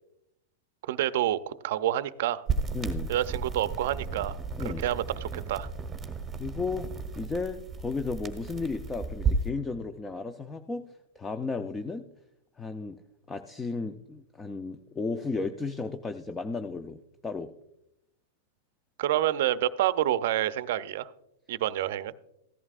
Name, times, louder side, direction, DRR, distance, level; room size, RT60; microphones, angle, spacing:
voice 1, 0.9-2.4 3.1-4.4 4.6-5.7 19.0-21.1 21.5-22.1, right 12 dB, 65° right, 14 dB, 0.5 m, -28 dB
sound 1, 2.5-9.5, right 4 dB, 15° right, 1.2 m, -33 dB
voice 2, 2.7-3.1 4.6-4.9 6.4-6.9 7.2-10.9 11.2-12.1 12.6-13.0 13.3-17.0 17.2-17.5, left 4 dB, 15° left, 8 dB, 0.5 m, -34 dB
14.5 x 11.0 x 2.4 m, 0.81 s
hypercardioid pair, 135°, 0 cm